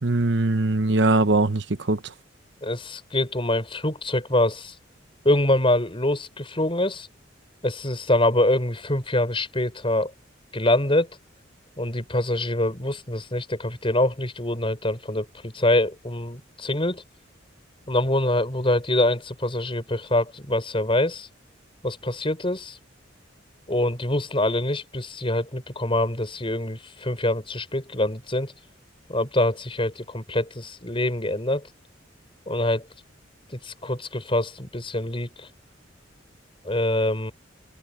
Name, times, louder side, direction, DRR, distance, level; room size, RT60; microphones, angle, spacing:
voice 1, 0.0-2.0, right 2 dB, 65° right, 1.0 m, -21 dB
voice 2, 2.6-4.8 5.2-7.1 7.6-10.1 10.5-11.1 11.8-17.0 17.9-21.3 21.8-22.8 23.7-28.5 29.1-31.6 32.5-32.9 33.5-35.5 36.6-37.3, left 1 dB, 30° left, 5.6 m, -25 dB
head